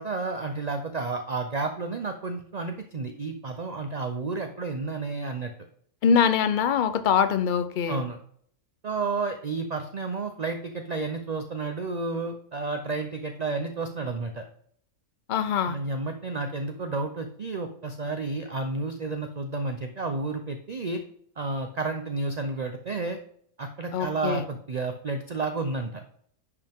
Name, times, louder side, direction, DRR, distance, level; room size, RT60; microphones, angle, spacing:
voice 1, 0.0-5.5 7.9-8.2 8.8-14.5 15.6-21.0 21.4-23.2 23.6-26.0, right 3 dB, 50° right, 6 dB, 0.5 m, -31 dB
voice 2, 6.0-8.0 15.3-15.8 23.9-24.5, left 7 dB, 75° left, 12 dB, 0.4 m, -23 dB
10.5 x 4.9 x 3.6 m, 0.63 s
omnidirectional pair, 1.6 m